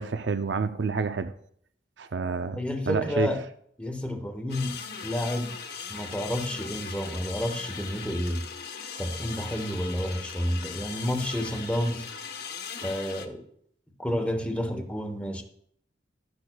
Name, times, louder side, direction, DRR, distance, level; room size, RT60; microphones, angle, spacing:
voice 1, 0.0-1.3 2.0-3.4, right 4 dB, 70° right, 0.5 m, -29 dB
voice 2, 2.6-3.4 3.8-4.8 5.0-5.5 5.9-8.4 9.0-12.1 12.8-13.5 14.0-15.4, equal, 5° left, 1.1 m, -30 dB
sound 1, 4.5-13.3, left 6 dB, 60° left, 1.0 m, -39 dB
13.5 x 10.5 x 2.3 m
head